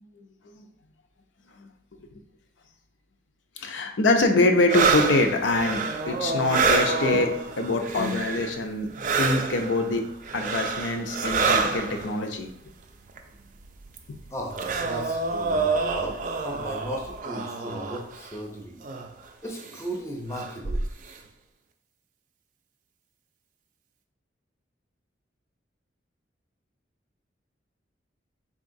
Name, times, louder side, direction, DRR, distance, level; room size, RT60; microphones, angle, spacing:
voice 1, 3.6-5.8 6.1-8.9 9.2-10.0 10.3-12.5 14.1-14.2, left 2 dB, 80° left, 5 dB, 0.5 m, -24 dB
sound 1, 4.7-8.7 8.9-12.2 13.2-13.3 13.6-18.3 18.8-19.1 19.6-19.8 20.3-21.1, right 4 dB, 45° right, 0.3 m, -27 dB
voice 2, 14.3-18.8 19.4-20.8, equal, 15° left, 0 dB, 0.5 m, -36 dB
3.8 x 3.6 x 2.6 m, 0.69 s
head